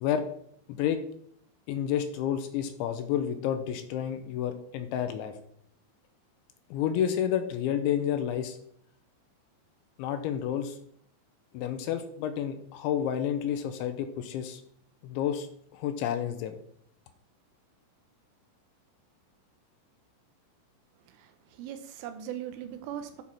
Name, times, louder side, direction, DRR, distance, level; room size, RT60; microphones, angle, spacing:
voice 1, 0.7-1.0 1.7-5.3 6.7-8.6 10.0-10.8 11.5-14.6 15.0-15.5 15.7-16.6, left 9 dB, 80° left, 8 dB, 2.9 m, -30 dB
voice 2, 21.1-23.2, right 10 dB, 85° right, 8 dB, 3.4 m, -40 dB
13.0 x 6.0 x 4.5 m, 0.69 s
omnidirectional pair, 5.7 m